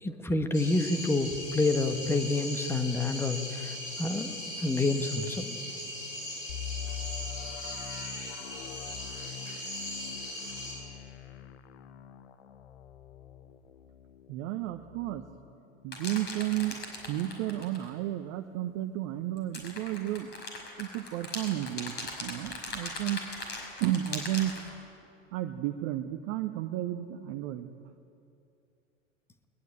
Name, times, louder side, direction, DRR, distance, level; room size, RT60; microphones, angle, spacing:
voice 1, 0.0-5.6, left 2 dB, 5° left, 8 dB, 1.4 m, -28 dB
sound 1, 0.5-10.8, left 1 dB, 75° left, 7.6 m, -39 dB
sound 2, 6.5-16.2 16.6-16.7 17.2-17.4, left 9 dB, 55° left, 1.1 m, -44 dB
voice 2, 14.3-15.2 15.8-16.8 17.1-20.3 20.8-21.9 22.2-23.2 23.8-24.5 25.3-27.7, right 14 dB, 35° right, 6 dB, 1.0 m, -32 dB
sound 3, 15.9-17.9 19.4-24.7, left 3 dB, 25° left, 5.7 m, -39 dB
21.0 x 21.0 x 8.9 m, 2.6 s
figure-of-eight pair, 95°, 39 cm